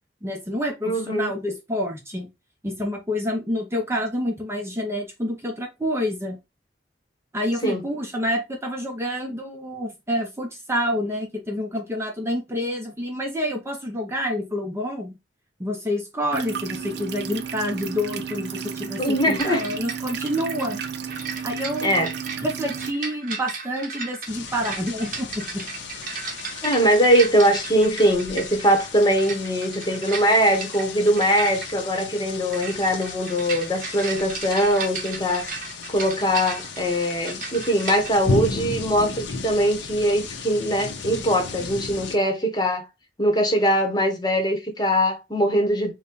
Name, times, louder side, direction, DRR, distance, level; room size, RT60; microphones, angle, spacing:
voice 1, 0.2-2.3 2.6-6.4 7.3-15.2 15.6-20.8 21.4-21.9 22.4-25.6, equal, 15° right, 0.7 m, -28 dB
voice 2, 0.8-1.3 7.6-7.8 19.0-19.7 21.8-22.1 26.6-35.5 35.9-42.9 43.2-45.9, equal, 25° left, 1.1 m, -21 dB
sound 1, 16.3-22.9, right 7 dB, 65° right, 0.5 m, -33 dB
sound 2, 19.4-38.1, right 5 dB, 50° right, 0.9 m, -35 dB
sound 3, 24.3-42.2, left 3 dB, 80° left, 0.7 m, -34 dB
4.1 x 2.2 x 3.8 m
head